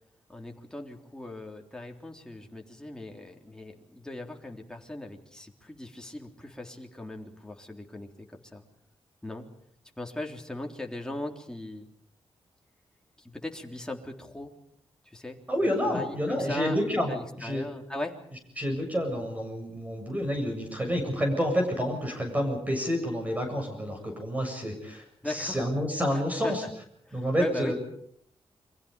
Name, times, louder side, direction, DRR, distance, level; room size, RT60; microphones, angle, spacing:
voice 1, 0.3-8.6 9.2-9.5 10.0-11.9 13.2-14.5 15.1-16.8 17.1-18.1 25.2-25.6 26.1-26.6 27.1-27.7, left 2 dB, 5° left, 1 dB, 3.7 m, -39 dB
voice 2, 15.5-17.6 18.6-26.6 27.1-27.7, equal, 15° right, 3 dB, 7.7 m, -29 dB
30.0 x 24.5 x 5.3 m, 0.67 s
wide cardioid pair, 105°, 10 cm